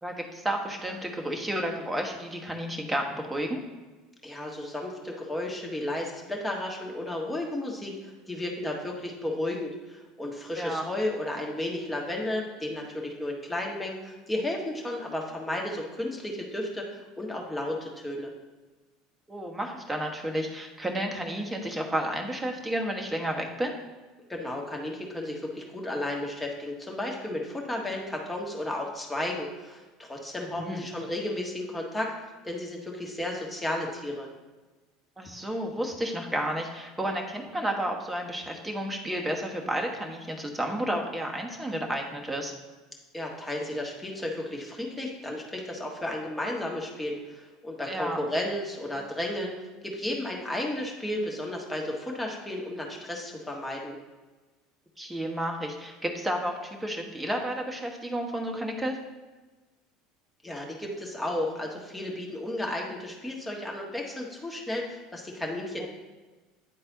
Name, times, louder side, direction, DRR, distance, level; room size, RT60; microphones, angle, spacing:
voice 1, 0.0-3.6 10.6-10.8 19.3-23.8 30.5-30.8 35.2-42.5 47.9-48.2 55.0-59.0 65.8-65.9, right 1 dB, 10° right, 1 dB, 1.1 m, -31 dB
voice 2, 4.2-18.3 24.3-32.1 32.4-34.3 43.1-49.6 49.8-54.0 60.4-65.9, left 1 dB, 10° left, -1 dB, 1.5 m, -33 dB
9.4 x 3.9 x 3.9 m, 1.2 s
figure-of-eight pair, 70°, 0 cm